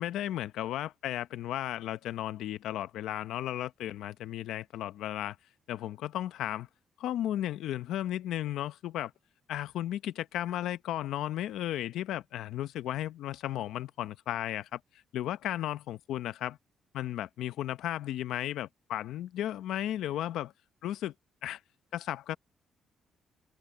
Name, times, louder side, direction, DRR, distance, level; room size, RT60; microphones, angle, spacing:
voice 1, 0.0-5.4 5.7-6.7 7.0-9.1 9.5-14.8 15.1-16.6 16.9-20.5 20.8-21.1 21.4-21.6 21.9-22.4, left 12 dB, 85° left, 0.8 m, -34 dB
cardioid pair, 90°, 0 cm